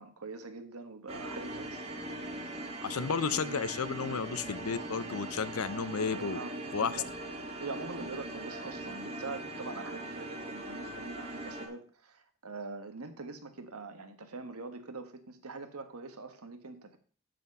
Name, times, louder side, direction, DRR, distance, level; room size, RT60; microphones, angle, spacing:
voice 1, 0.0-1.8 6.1-7.1 7.6-17.0, right 3 dB, 90° right, 7 dB, 1.4 m, -43 dB
sound 1, 1.1-11.7, right 1 dB, 30° right, 1.5 m, -40 dB
voice 2, 2.8-6.4 6.7-7.0, left 6 dB, 80° left, 14 dB, 0.7 m, -32 dB
12.5 x 4.4 x 5.4 m, 0.43 s
head